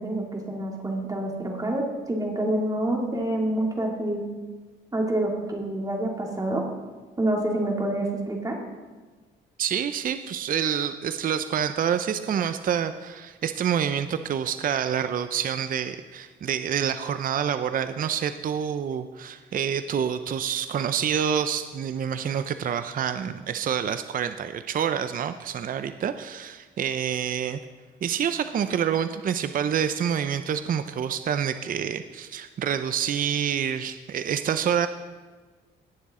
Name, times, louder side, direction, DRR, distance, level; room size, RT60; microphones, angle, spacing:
voice 1, 0.0-4.2 4.9-6.6 7.2-8.6, right 1 dB, 15° right, 0 dB, 2.5 m, -27 dB
voice 2, 9.6-27.6 28.0-34.9, right 8 dB, 45° right, 10 dB, 0.5 m, -27 dB
18.5 x 7.2 x 3.7 m, 1.4 s
cardioid pair, 90°, 20 cm